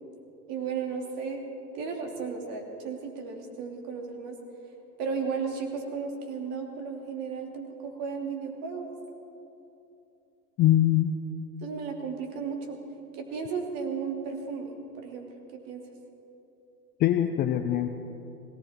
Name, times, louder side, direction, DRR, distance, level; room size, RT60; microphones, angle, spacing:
voice 1, 0.5-1.4 1.7-4.4 5.0-8.9 11.6-12.8 13.2-15.8, right 5 dB, 45° right, 2 dB, 2.8 m, -34 dB
voice 2, 10.6-11.1 17.0-17.9, left 12 dB, 20° left, 8 dB, 0.4 m, -22 dB
19.0 x 17.0 x 4.4 m, 2.8 s
hypercardioid pair, 105°, 46 cm